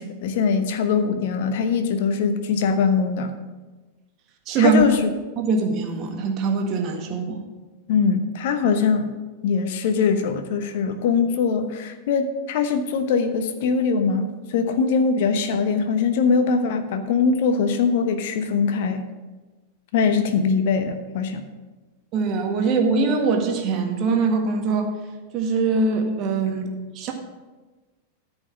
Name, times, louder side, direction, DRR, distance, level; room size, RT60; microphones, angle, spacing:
voice 1, 0.0-3.4 4.6-5.2 7.9-19.1 19.9-21.4, left 5 dB, 50° left, 8 dB, 0.9 m, -22 dB
voice 2, 4.5-4.8 5.4-7.4 22.1-24.9 25.3-27.1, right 4 dB, 35° right, 3 dB, 1.7 m, -22 dB
13.5 x 5.3 x 6.1 m, 1.2 s
figure-of-eight pair, 90°, 0 cm